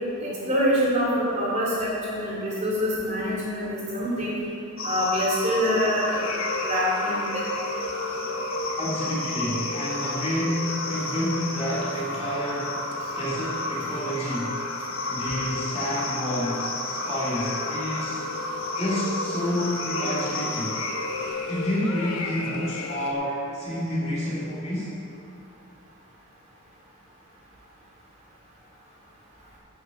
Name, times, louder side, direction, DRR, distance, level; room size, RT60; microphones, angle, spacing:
voice 1, 0.2-4.3 4.8-6.2 6.6-7.4, equal, 30° right, -7 dB, 3.2 m, -25 dB
sound 1, 4.8-21.3, left 2 dB, 65° left, 1.7 m, -33 dB
Flying Top, 6.0-23.1, left 2 dB, 90° left, 1.1 m, -35 dB
voice 2, 8.8-14.6 15.1-18.3 18.7-20.8 21.5-24.9, equal, 30° left, -8 dB, 2.8 m, -29 dB
16.0 x 6.3 x 5.2 m, 2.7 s
head